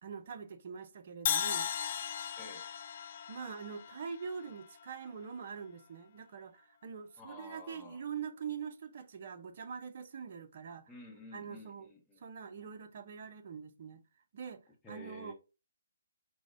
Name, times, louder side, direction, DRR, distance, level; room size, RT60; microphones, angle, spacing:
voice 1, 0.0-1.7 3.0-10.9 11.3-11.9 12.2-14.0 14.3-14.6 14.9-15.3, right 6 dB, 45° right, 0.5 m, -44 dB
Crash cymbal, 1.3-5.3, left 9 dB, 40° left, 0.3 m, -37 dB
voice 2, 2.4-2.7 7.2-8.0 10.9-12.3 14.8-15.3, left 2 dB, 10° left, 0.8 m, -51 dB
4.8 x 2.1 x 3.6 m
figure-of-eight pair, 140°, 0 cm